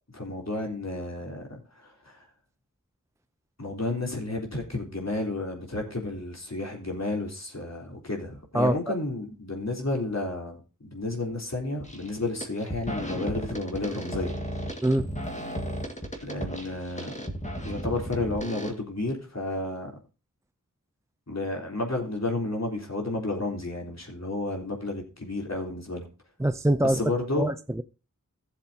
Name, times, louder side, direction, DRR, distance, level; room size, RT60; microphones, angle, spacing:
voice 1, 0.1-2.3 3.6-14.4 16.2-17.3 17.6-19.9 21.3-26.1 26.8-27.5, left 2 dB, 55° left, 3.5 m, -32 dB
sound 1, 11.8-12.1 12.4-18.7, equal, 20° left, 1.8 m, -34 dB
voice 2, 26.4-27.0 27.4-27.8, right 1 dB, 10° right, 0.5 m, -24 dB
16.5 x 7.2 x 2.8 m
wide cardioid pair, 45°, 32 cm